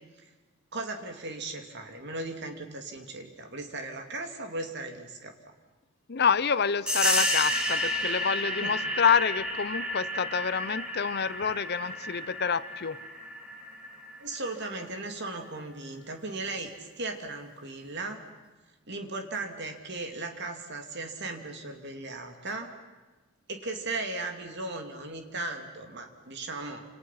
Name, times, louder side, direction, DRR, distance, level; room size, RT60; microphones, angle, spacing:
voice 1, 0.7-5.3 8.6-8.8 14.2-18.2 18.9-22.7 23.5-26.8, right 2 dB, 55° right, 5 dB, 2.8 m, -37 dB
voice 2, 6.1-13.0, left 6 dB, 50° left, 15 dB, 0.7 m, -27 dB
sound 1, 6.9-15.2, left 1 dB, 5° right, 2.9 m, -31 dB
29.5 x 27.5 x 5.9 m, 1.2 s
head